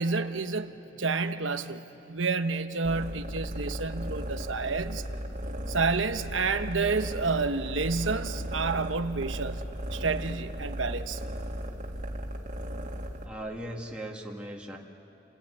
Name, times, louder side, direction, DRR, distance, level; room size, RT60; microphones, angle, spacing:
voice 1, 0.0-1.8 2.1-5.0 5.7-9.6 9.9-11.2, right 4 dB, 75° right, 9 dB, 1.1 m, -29 dB
sound 1, 2.8-13.3, equal, 40° right, 2.1 m, -36 dB
voice 2, 13.2-14.8, right 1 dB, 5° right, -1 dB, 2.1 m, -38 dB
29.5 x 18.0 x 9.8 m, 2.9 s
head